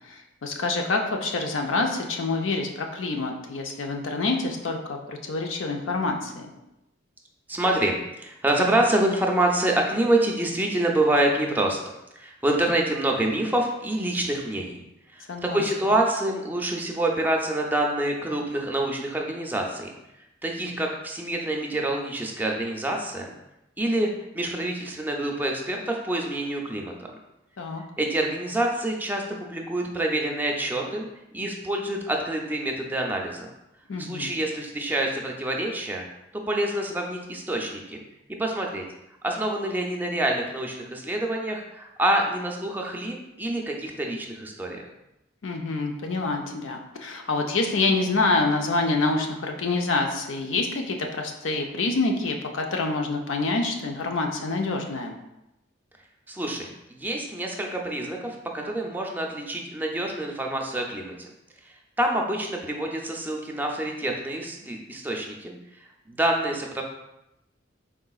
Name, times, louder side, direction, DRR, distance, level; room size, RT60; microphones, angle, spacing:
voice 1, 0.1-6.5 15.3-15.6 27.6-27.8 33.9-34.3 45.4-55.2, left 3 dB, 85° left, 3 dB, 0.6 m, -27 dB
voice 2, 7.5-11.8 12.1-14.8 15.1-19.9 20.4-23.3 23.8-26.9 28.0-31.1 31.3-33.5 34.0-36.0 36.5-38.0 38.4-38.8 39.2-44.8 56.3-61.3 61.6-66.8, right 1 dB, 10° right, 0 dB, 0.5 m, -27 dB
4.7 x 3.7 x 2.3 m, 0.90 s
head